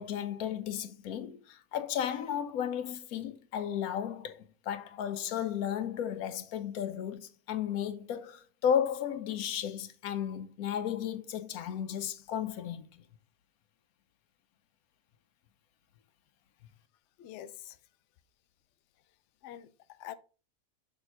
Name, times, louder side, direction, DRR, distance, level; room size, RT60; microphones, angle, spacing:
voice 1, 0.0-13.0, left 9 dB, 80° left, 1.1 m, -34 dB
voice 2, 17.2-17.8 19.4-20.1, left 12 dB, 65° left, 0.8 m, -45 dB
6.3 x 3.5 x 4.5 m
omnidirectional pair, 1.5 m